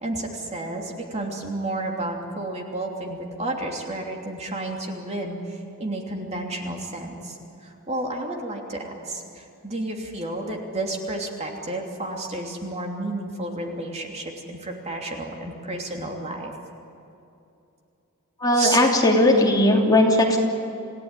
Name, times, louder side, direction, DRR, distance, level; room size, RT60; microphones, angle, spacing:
voice 1, 0.0-7.4 7.6-16.5 18.5-18.8, right 2 dB, 30° right, 1 dB, 3.0 m, -31 dB
voice 2, 18.4-20.4, left 1 dB, 20° left, -1 dB, 3.0 m, -18 dB
27.5 x 16.5 x 10.0 m, 2.8 s
head